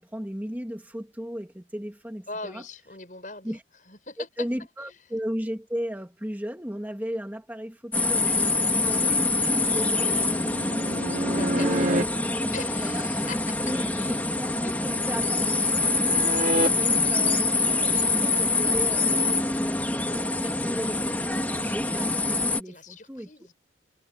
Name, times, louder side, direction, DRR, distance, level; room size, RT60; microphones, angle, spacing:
voice 1, 0.0-2.6 3.4-3.6 4.4-12.1 12.4-13.1 13.6-17.4 18.1-23.3, equal, 10° right, 2.1 m, -36 dB
voice 2, 2.3-3.6 3.9-4.3 11.3-12.0 12.5-14.2 14.6-14.7 17.0-17.3 17.7-18.1 22.6-23.5, left 3 dB, 45° left, 7.5 m, -41 dB
sound 1, 7.9-22.6, left 2 dB, 10° left, 3.1 m, -25 dB
sound 2, 10.3-12.0 14.7-16.7 20.1-20.4, right 1 dB, 45° right, 4.2 m, -29 dB
head